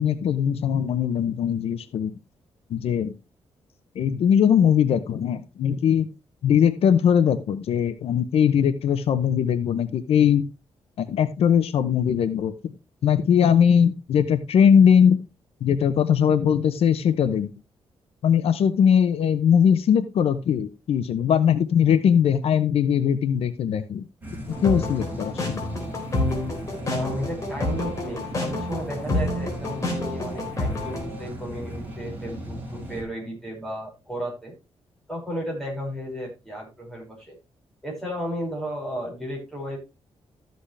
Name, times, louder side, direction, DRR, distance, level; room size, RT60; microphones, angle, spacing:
voice 1, 0.0-2.1 2.7-3.1 4.0-6.1 6.4-10.5 11.0-12.5 13.0-15.2 15.6-17.5 18.2-24.1 24.6-25.6, left 8 dB, 70° left, 11 dB, 0.8 m, -20 dB
sound 1, 24.2-33.0, equal, 20° right, 4.7 m, -36 dB
sound 2, 24.5-31.0, left 2 dB, 30° left, 4.0 m, -29 dB
voice 2, 26.9-34.5 35.1-37.3 37.8-39.8, equal, 5° left, -3 dB, 5.6 m, -33 dB
13.0 x 7.9 x 3.3 m, 0.27 s
wide cardioid pair, 175°, 10 cm